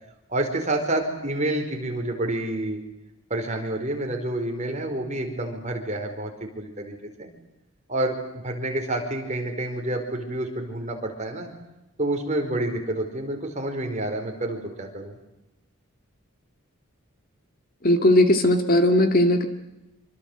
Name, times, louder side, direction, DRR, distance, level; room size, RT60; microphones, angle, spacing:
voice 1, 0.3-2.8 3.3-7.3 7.9-8.2 8.4-11.5 12.0-15.1, right 1 dB, 30° right, 3 dB, 4.8 m, -28 dB
voice 2, 17.8-19.4, left 1 dB, 40° left, 7 dB, 2.2 m, -18 dB
26.0 x 24.5 x 8.1 m, 0.98 s
head